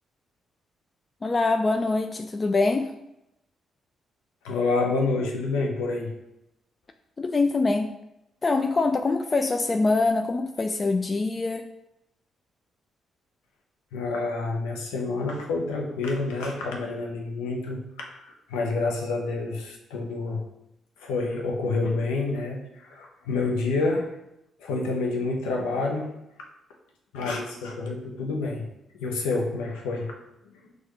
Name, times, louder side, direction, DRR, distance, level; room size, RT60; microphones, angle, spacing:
voice 1, 1.2-2.9 7.2-7.9 8.4-11.7, left 3 dB, 35° left, 7 dB, 0.3 m, -24 dB
voice 2, 4.4-6.1 13.9-20.4 21.0-24.1 24.6-26.1 27.1-28.6 28.9-30.1 30.4-30.5, left 3 dB, 75° left, 0 dB, 0.7 m, -28 dB
6.2 x 2.4 x 3.0 m, 0.86 s
hypercardioid pair, 40°, 0 cm